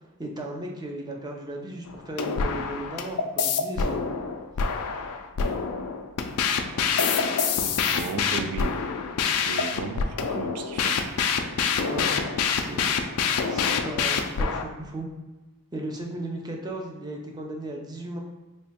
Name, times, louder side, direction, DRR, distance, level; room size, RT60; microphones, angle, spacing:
voice 1, 0.2-4.0 11.9-12.9 13.5-15.1 15.7-18.2, right 1 dB, 20° right, 0 dB, 0.5 m, -36 dB
Network Sound (znet sequencer), 1.9-14.6, left 5 dB, 80° left, 0.4 m, -26 dB
voice 2, 7.4-8.8 9.3-11.0, right 4 dB, 85° right, 7 dB, 0.4 m, -35 dB
3.2 x 2.3 x 4.1 m, 1.1 s
head